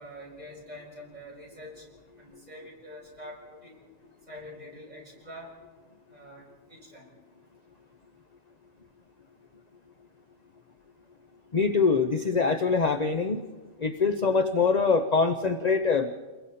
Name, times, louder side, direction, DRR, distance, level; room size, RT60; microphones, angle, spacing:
voice 1, 0.0-1.8 2.2-3.8 4.3-5.5 6.1-7.1, equal, 30° right, -3 dB, 6.3 m, -45 dB
voice 2, 11.5-13.4 13.8-16.2, left 4 dB, 35° left, 7 dB, 0.8 m, -24 dB
29.0 x 22.0 x 4.3 m, 1.4 s
omnidirectional pair, 1.4 m